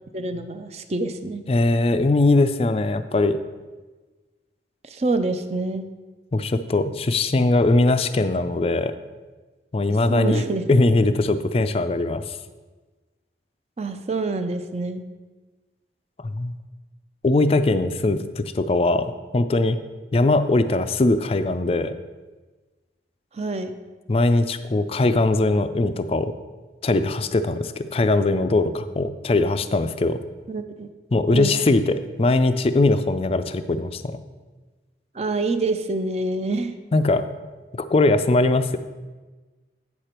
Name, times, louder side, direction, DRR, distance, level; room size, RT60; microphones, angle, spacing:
voice 1, 0.1-1.4 4.8-5.9 10.1-10.6 13.8-15.1 23.3-23.8 30.5-30.9 31.3-31.6 35.1-36.7, right 3 dB, 35° right, 9 dB, 0.5 m, -26 dB
voice 2, 1.5-3.4 6.3-8.9 9.7-12.4 16.2-16.6 17.2-19.8 20.1-21.9 24.1-26.3 26.8-30.2 31.1-34.2 36.9-37.3 37.7-38.8, left 2 dB, 35° left, 11 dB, 0.4 m, -21 dB
8.5 x 6.6 x 4.4 m, 1.3 s
head